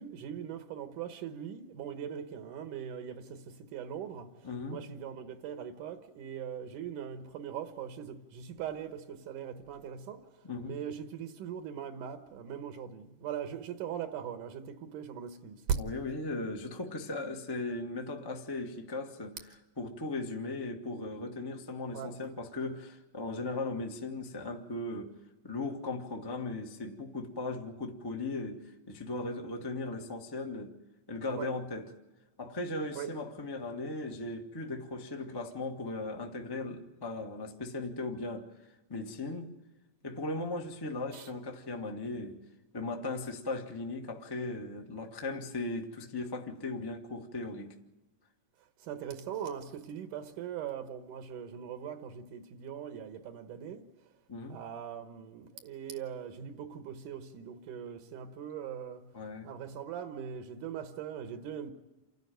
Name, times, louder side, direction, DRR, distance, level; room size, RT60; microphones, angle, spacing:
voice 1, 0.0-15.6 21.9-22.2 31.4-31.5 32.9-33.1 41.1-41.3 48.8-53.8 54.5-59.1 59.4-61.7, right 8 dB, 80° right, 2.7 m, -41 dB
voice 2, 4.4-4.8 10.4-10.8 15.8-19.4 19.8-25.1 25.4-30.7 31.1-31.9 32.4-39.5 40.0-42.4 42.7-47.7 54.3-54.6 59.1-59.5, left 2 dB, 20° left, 0.6 m, -37 dB
28.5 x 12.0 x 9.2 m
omnidirectional pair, 3.7 m